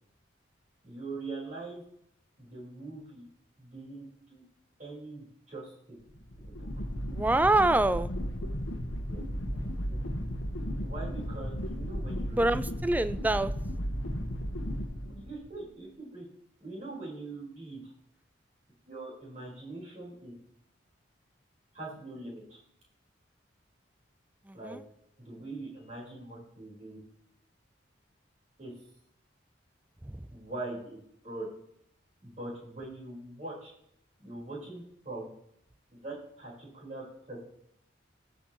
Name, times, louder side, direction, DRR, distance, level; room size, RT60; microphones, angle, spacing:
voice 1, 0.8-1.8 2.4-3.2 3.6-4.4 4.8-6.0 6.4-6.7 9.1-9.2 9.9-10.0 10.8-12.7 15.0-16.3 16.6-17.9 18.8-20.3 21.7-22.6 24.5-24.8 25.2-27.0 28.6-28.7 30.3-31.5 32.2-33.7 34.2-35.3 36.0-37.5, right 2 dB, 35° right, -5 dB, 4.4 m, -42 dB
sound 1, 6.1-15.6, equal, 85° left, 1.3 m, -35 dB
voice 2, 7.1-8.1 9.5-9.8 12.3-13.5 24.5-24.8 30.1-30.2, right 2 dB, 10° right, 14 dB, 0.3 m, -26 dB
17.5 x 6.5 x 3.0 m, 0.73 s
head